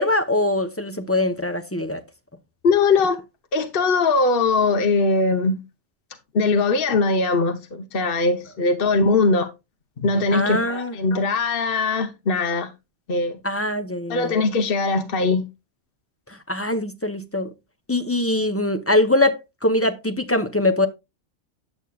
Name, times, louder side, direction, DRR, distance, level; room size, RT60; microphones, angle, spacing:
voice 1, 0.0-2.0 10.3-10.9 13.4-14.3 16.5-17.5 17.9-20.9, left 2 dB, 15° left, 0.7 m, -22 dB
voice 2, 2.6-3.2 3.5-5.6 6.3-9.5 10.0-12.7 13.1-13.4 14.1-15.4, left 3 dB, 55° left, 1.2 m, -21 dB
10.5 x 8.1 x 2.4 m
omnidirectional pair, 1.2 m